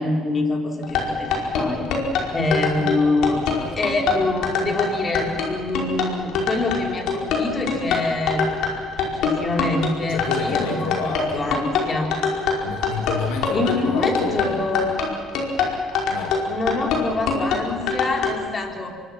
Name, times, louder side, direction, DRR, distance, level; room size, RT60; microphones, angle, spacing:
voice 1, 0.0-1.9 2.3-3.4 3.8-8.4 9.0-12.1 13.5-15.0 16.5-18.9, left 2 dB, 30° left, 1 dB, 4.8 m, -25 dB
sound 1, 0.8-18.3, left 6 dB, 75° left, 5.1 m, -23 dB
voice 2, 10.1-11.5 12.6-14.7 16.1-16.4, left 4 dB, 90° left, 3 dB, 2.8 m, -29 dB
26.5 x 23.0 x 6.0 m, 2.2 s
cardioid pair, 95°, 0 cm